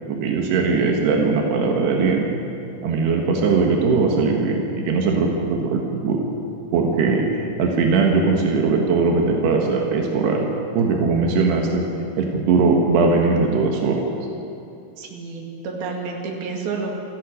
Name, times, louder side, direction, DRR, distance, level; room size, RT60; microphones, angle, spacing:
voice 1, 0.1-2.3 2.8-6.3 6.7-7.3 7.6-10.5 10.8-11.8 12.2-14.0, right 4 dB, 90° right, 1 dB, 3.8 m, -20 dB
voice 2, 15.0-16.9, right 4 dB, 70° right, 0 dB, 4.3 m, -30 dB
28.5 x 16.0 x 6.5 m, 2.8 s
omnidirectional pair, 4.6 m